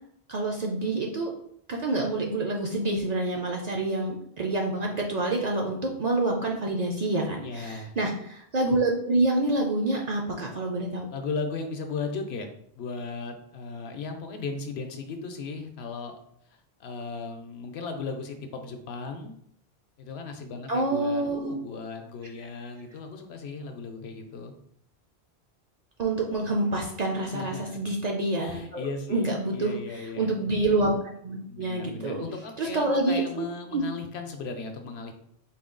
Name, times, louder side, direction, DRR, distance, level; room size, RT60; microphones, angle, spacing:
voice 1, 0.3-1.3 1.7-11.1 20.7-21.6 26.0-29.7 30.2-30.9 31.2-32.2 32.6-33.4 33.7-33.8, right 2 dB, 55° right, 0 dB, 0.5 m, -27 dB
voice 2, 7.4-7.9 11.1-12.5 12.8-16.2 16.5-19.4 20.0-24.5 27.3-27.8 28.4-30.3 31.5-35.1, left 4 dB, 75° left, 5 dB, 0.9 m, -36 dB
4.1 x 2.2 x 3.7 m, 0.69 s
omnidirectional pair, 1.1 m